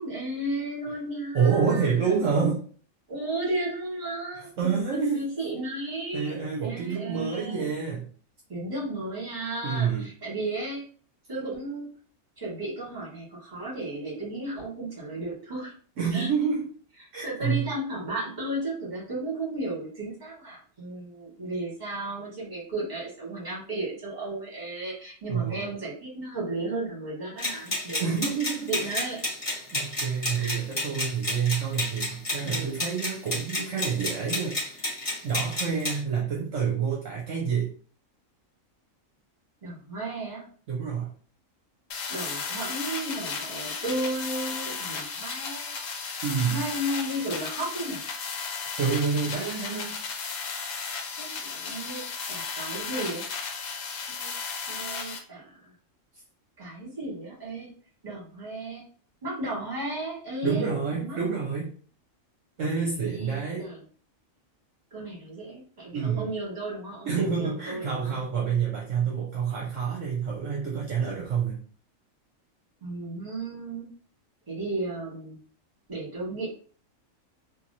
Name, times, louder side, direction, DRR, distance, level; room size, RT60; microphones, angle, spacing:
voice 1, 0.0-2.2 3.1-7.6 8.5-10.8 11.3-11.9 12.4-15.7 16.1-16.3 17.2-28.1 28.7-29.2 30.4-30.6 32.4-32.7 39.6-40.5 42.1-45.7 46.5-48.0 51.2-53.3 54.1-54.3 54.7-55.7 56.6-57.7 58.0-58.9 59.2-61.2 63.0-63.8 64.9-68.2 72.8-73.9 74.5-75.4 75.9-76.5, right 1 dB, 35° right, -5 dB, 1.6 m, -34 dB
voice 2, 1.3-2.6 4.6-5.3 6.1-8.1 9.6-10.1 16.0-16.7 17.1-17.7 25.3-25.7 28.0-29.0 29.5-35.0 35.2-37.7 40.7-41.1 46.2-46.6 48.8-50.0 60.4-61.7 62.6-63.7 65.9-66.3 67.1-71.6, right 6 dB, 70° right, -3 dB, 1.0 m, -28 dB
sound 1, 27.4-36.0, left 1 dB, 25° left, 1.1 m, -31 dB
sound 2, 41.9-55.2, left 5 dB, 75° left, 1.0 m, -34 dB
3.0 x 2.6 x 2.6 m, 0.44 s
omnidirectional pair, 1.4 m